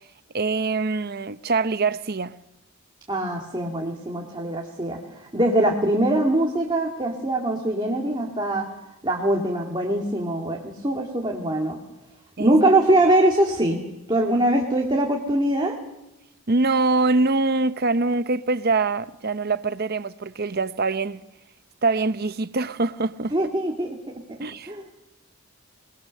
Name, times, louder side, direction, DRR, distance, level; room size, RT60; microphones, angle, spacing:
voice 1, 0.3-2.3 12.4-12.5 16.5-21.2 21.8-23.3 24.4-24.7, right 3 dB, 45° right, 0.8 m, -24 dB
voice 2, 3.1-8.7 9.0-11.8 12.4-13.8 14.1-15.8 23.3-24.0 24.7-24.9, right 1 dB, 20° right, 2.5 m, -22 dB
28.5 x 21.0 x 6.7 m
head